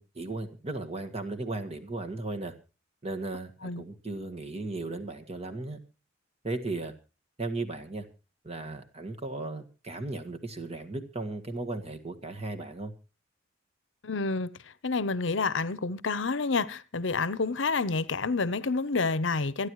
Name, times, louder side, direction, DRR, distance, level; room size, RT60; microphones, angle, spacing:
voice 1, 0.0-2.5 3.0-5.8 6.4-6.9 7.4-8.1 8.4-12.9, right 2 dB, 30° right, 1.7 m, -36 dB
voice 2, 14.0-14.5 14.8-19.7, left 4 dB, 65° left, 0.8 m, -28 dB
27.0 x 10.0 x 3.1 m
head